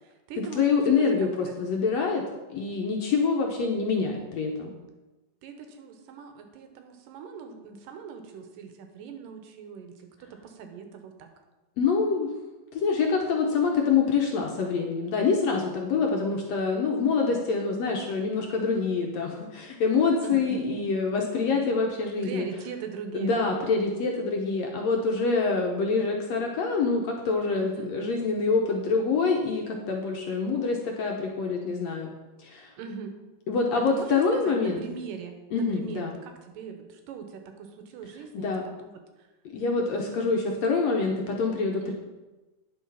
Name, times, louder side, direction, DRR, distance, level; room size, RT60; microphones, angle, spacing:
voice 1, 0.0-1.1 1.5-1.6 5.4-11.3 20.2-20.6 21.0-21.1 21.4-21.6 22.2-23.6 27.5-28.0 32.8-33.1 33.8-38.5 38.8-39.3 41.8-41.9, right 6 dB, 85° right, 6 dB, 2.6 m, -40 dB
voice 2, 0.6-2.2 2.5-4.7 11.8-12.3 12.7-22.5 23.1-32.1 32.4-32.7 33.5-34.8 35.5-36.1 38.3-38.6 39.5-41.9, left 4 dB, 70° left, 1 dB, 1.7 m, -26 dB
9.5 x 6.2 x 5.5 m, 1.1 s
omnidirectional pair, 3.9 m